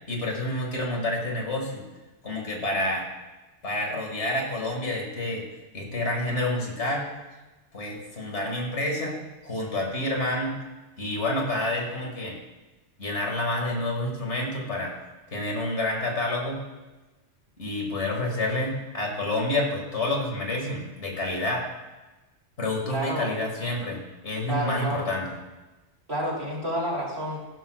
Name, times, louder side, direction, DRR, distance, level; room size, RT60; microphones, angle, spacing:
voice 1, 0.1-1.8 2.2-3.1 3.6-5.4 5.7-7.1 7.7-9.2 9.4-10.6 11.0-12.4 13.0-14.9 15.3-16.6 17.6-21.7 22.6-25.3, left 1 dB, 80° left, 0 dB, 2.4 m, -28 dB
voice 2, 22.9-23.3 24.5-25.1 26.1-27.4, right 1 dB, 60° right, -4 dB, 3.6 m, -29 dB
15.0 x 12.5 x 2.4 m, 1.1 s
omnidirectional pair, 1.2 m